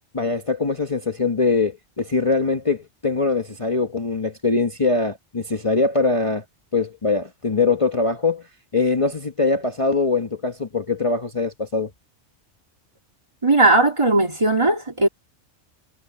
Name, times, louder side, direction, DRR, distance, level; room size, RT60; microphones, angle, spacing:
voice 1, 0.1-6.4 6.7-11.9, left 3 dB, 30° left, 1.1 m, -22 dB
voice 2, 13.4-15.1, right 2 dB, 25° right, 2.3 m, -17 dB
omnidirectional pair, 1.3 m